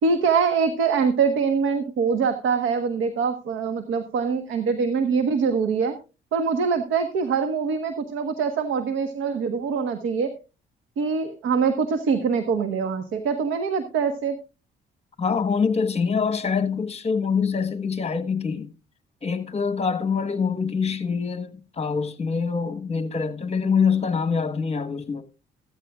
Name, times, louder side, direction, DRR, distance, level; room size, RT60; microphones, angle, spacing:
voice 1, 0.0-5.9 6.3-10.3 11.0-14.4, right 5 dB, 80° right, 1.3 m, -24 dB
voice 2, 15.2-18.7 19.2-25.2, left 5 dB, 30° left, 1.4 m, -25 dB
15.0 x 13.5 x 2.4 m
cardioid pair, 90°, 20 cm